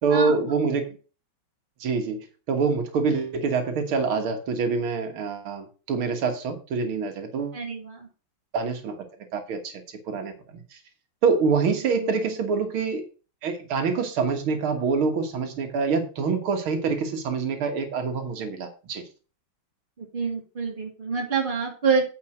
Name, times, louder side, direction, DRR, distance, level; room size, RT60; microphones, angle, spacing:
voice 1, 0.0-0.9 1.8-7.6 8.5-9.0 9.3-10.6 11.2-13.0 13.4-19.0, right 5 dB, 85° right, 5 dB, 2.3 m, -26 dB
voice 2, 7.5-8.1 11.9-12.1 20.0-22.0, right 5 dB, 25° right, 1 dB, 2.4 m, -26 dB
8.8 x 5.5 x 6.3 m, 0.35 s
omnidirectional pair, 2.2 m